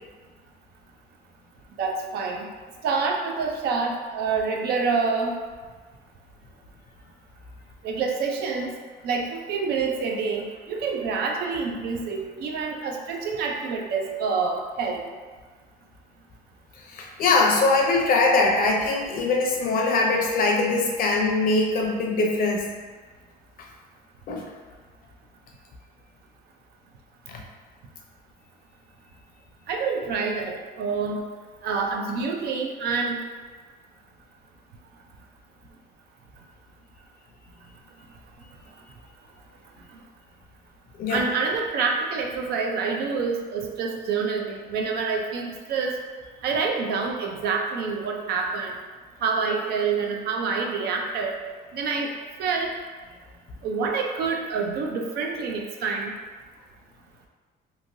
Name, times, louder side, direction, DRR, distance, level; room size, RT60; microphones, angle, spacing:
voice 1, 1.8-2.5 2.8-5.3 7.8-8.7 9.0-15.0 29.7-31.2 31.6-33.2 41.1-45.9 46.4-48.7 49.2-51.4 51.7-52.1 52.4-52.7 53.6-56.1, right 5 dB, 70° right, 1 dB, 0.5 m, -27 dB
voice 2, 16.8-22.7 24.3-24.4 27.3-27.4 41.0-41.3, left 3 dB, 55° left, 0 dB, 0.6 m, -22 dB
3.0 x 2.7 x 2.6 m, 1.4 s
cardioid pair, 110°, 17 cm